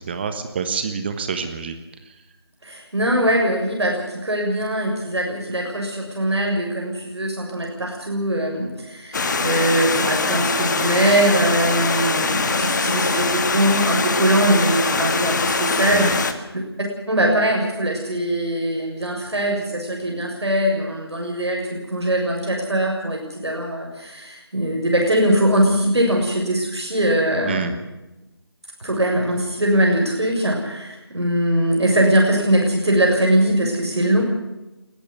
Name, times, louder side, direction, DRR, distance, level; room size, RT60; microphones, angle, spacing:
voice 1, 0.0-1.8 15.9-16.1 27.5-27.7, right 6 dB, 25° right, 8 dB, 1.4 m, -27 dB
voice 2, 2.6-16.6 17.1-27.6 28.8-34.2, right 1 dB, 80° right, 0 dB, 6.8 m, -21 dB
Stream, 9.1-16.3, left 4 dB, 45° left, 2.0 m, -22 dB
21.0 x 14.0 x 9.6 m, 1.0 s
figure-of-eight pair, 160°, 14 cm